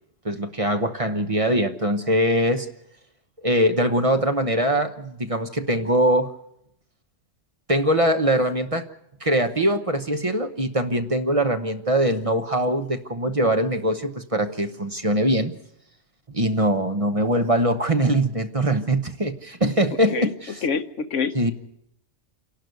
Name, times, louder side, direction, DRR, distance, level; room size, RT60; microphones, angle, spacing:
voice 1, 0.2-2.7 3.4-6.3 7.7-8.9 9.2-15.6 16.3-20.6 21.3-21.5, right 1 dB, 30° right, 8 dB, 0.9 m, -22 dB
voice 2, 20.6-21.5, left 5 dB, 80° left, 10 dB, 1.3 m, -26 dB
27.5 x 11.5 x 9.4 m, 0.78 s
omnidirectional pair, 1.2 m